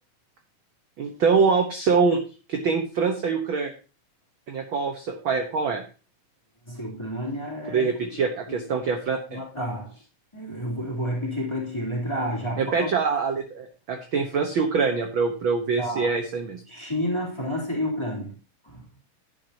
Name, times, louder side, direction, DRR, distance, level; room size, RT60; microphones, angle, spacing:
voice 1, 1.0-2.2 2.5-3.7 4.5-5.8 7.7-9.4 12.6-16.6, right 5 dB, 55° right, 1.5 m, -24 dB
voice 2, 6.6-7.9 8.2-8.6 9.3-9.9 10.3-12.9 15.8-16.1 16.7-18.4 18.6-18.8, equal, 10° left, 3.1 m, -30 dB
11.0 x 10.5 x 2.9 m
omnidirectional pair, 3.5 m